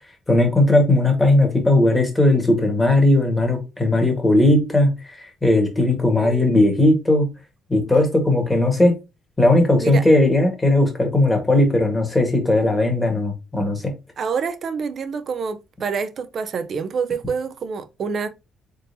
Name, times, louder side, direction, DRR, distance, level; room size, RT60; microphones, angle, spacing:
voice 1, 0.3-7.3 7.7-9.0 9.4-13.9, left 1 dB, 15° left, 1.5 m, -17 dB
voice 2, 6.2-6.8 9.8-10.0 14.2-18.3, right 5 dB, 45° right, 0.5 m, -27 dB
4.0 x 3.8 x 2.7 m
cardioid pair, 125°, 0 cm